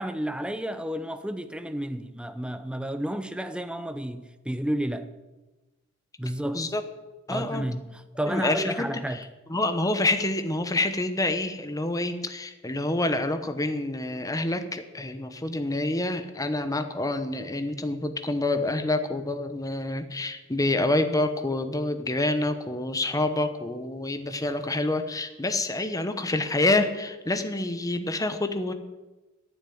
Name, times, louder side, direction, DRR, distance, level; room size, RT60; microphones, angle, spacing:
voice 1, 0.0-5.1 6.2-6.6 7.3-9.3, right 1 dB, 5° right, 0.7 m, -31 dB
voice 2, 7.3-7.7 8.3-8.9 9.5-28.7, left 2 dB, 15° left, 1.0 m, -27 dB
10.5 x 9.1 x 9.4 m
head